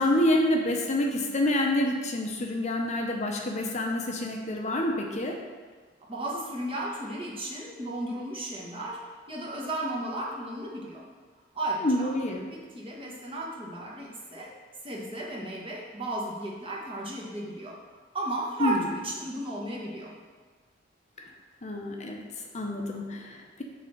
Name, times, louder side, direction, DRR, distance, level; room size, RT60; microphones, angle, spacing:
voice 1, 0.0-5.4 11.8-12.5 18.6-18.9 21.2-21.3 21.6-23.6, left 1 dB, 40° left, 1 dB, 0.7 m, -27 dB
voice 2, 6.1-9.0 9.3-11.0 11.5-12.1 12.5-14.5 14.8-17.8 18.1-20.1, right 1 dB, 30° right, -3 dB, 1.3 m, -34 dB
6.8 x 4.2 x 6.5 m, 1.5 s
head